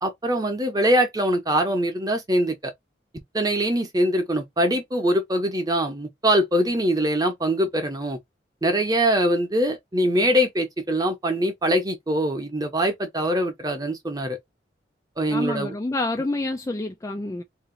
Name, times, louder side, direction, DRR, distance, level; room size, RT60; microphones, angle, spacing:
voice 1, 0.0-2.7 3.3-8.2 8.6-14.4 15.2-15.7, equal, 20° right, 0.9 m, -23 dB
voice 2, 15.3-17.4, left 2 dB, 15° left, 0.3 m, -28 dB
2.7 x 2.5 x 3.8 m
head